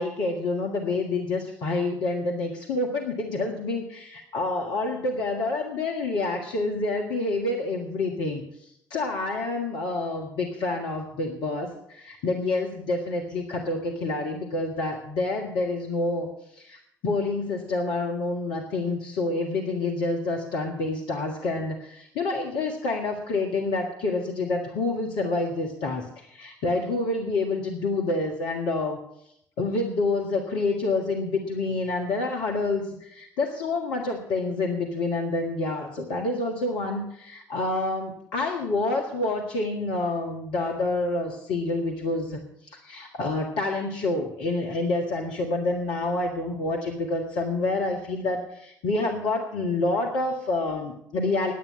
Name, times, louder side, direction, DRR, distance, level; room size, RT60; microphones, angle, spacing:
voice 1, 0.0-29.0 29.6-42.4 42.6-51.5, left 2 dB, 60° left, 1 dB, 1.7 m, -28 dB
11.0 x 8.9 x 9.8 m, 0.75 s
figure-of-eight pair, 50°, 10 cm